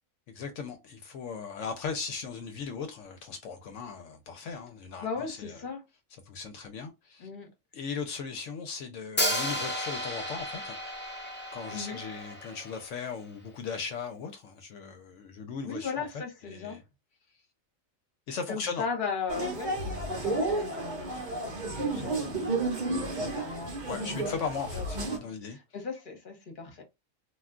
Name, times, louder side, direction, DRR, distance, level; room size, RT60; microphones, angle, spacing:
voice 1, 0.3-5.6 6.3-7.3 7.7-10.8 11.5-16.1 16.4-16.8 18.3-18.8 23.9-25.6, left 5 dB, 70° left, 0.9 m, -38 dB
voice 2, 5.0-5.8 7.2-7.5 11.7-12.0 15.6-16.8 18.5-22.2 22.5-23.8 24.1-24.3 24.7-24.8 25.2-26.8, left 5 dB, 45° left, 1.0 m, -37 dB
Hi-hat, 9.2-13.1, equal, 15° left, 0.3 m, -33 dB
sound 1, 19.3-25.2, right 2 dB, 45° right, 0.7 m, -32 dB
2.4 x 2.2 x 3.6 m
omnidirectional pair, 1.4 m